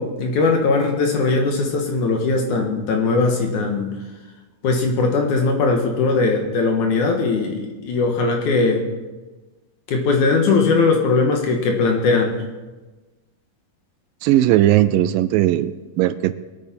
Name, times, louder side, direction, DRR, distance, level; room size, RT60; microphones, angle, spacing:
voice 1, 0.0-3.9 4.6-8.9 9.9-12.4, left 3 dB, 65° left, 2 dB, 2.6 m, -19 dB
voice 2, 14.2-16.4, right 13 dB, 80° right, 13 dB, 2.1 m, -18 dB
23.0 x 8.9 x 4.4 m, 1.2 s
omnidirectional pair, 4.2 m